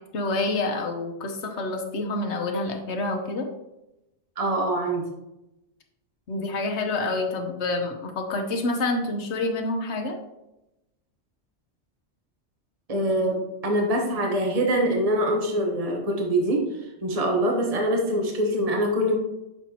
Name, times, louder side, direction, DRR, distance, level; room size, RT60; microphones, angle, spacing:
voice 1, 0.1-3.5 6.3-10.2, left 2 dB, 80° left, 4 dB, 1.2 m, -27 dB
voice 2, 4.4-5.0 12.9-19.2, right 1 dB, 35° right, 1 dB, 1.1 m, -24 dB
7.2 x 5.5 x 2.8 m, 0.92 s
omnidirectional pair, 1.1 m